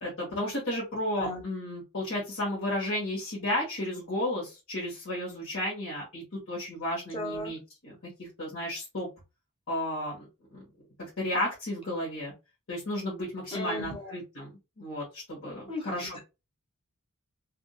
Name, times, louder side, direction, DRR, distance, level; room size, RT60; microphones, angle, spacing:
voice 1, 0.0-9.1 9.7-10.2 10.5-10.6 11.2-12.3 12.7-14.5 14.8-16.2, left 1 dB, 60° left, -7 dB, 1.5 m, -33 dB
voice 2, 7.1-7.5 13.5-14.1 15.7-16.2, left 1 dB, 25° left, 0 dB, 1.2 m, -36 dB
3.6 x 2.6 x 2.3 m, 0.26 s
head